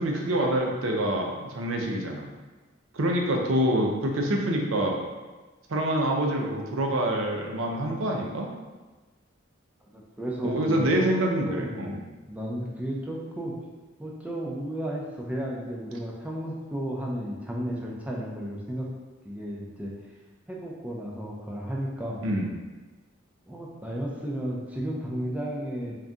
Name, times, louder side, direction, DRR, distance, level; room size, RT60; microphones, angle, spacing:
voice 1, 0.0-2.3 2.9-5.0 5.7-8.5 10.4-12.0 22.2-22.5, right 1 dB, 75° right, 1 dB, 0.6 m, -26 dB
voice 2, 9.8-13.5 14.0-18.9 19.2-19.9 20.5-22.2 23.5-26.0, equal, 5° right, -3 dB, 0.5 m, -33 dB
3.7 x 2.7 x 3.5 m, 1.2 s
head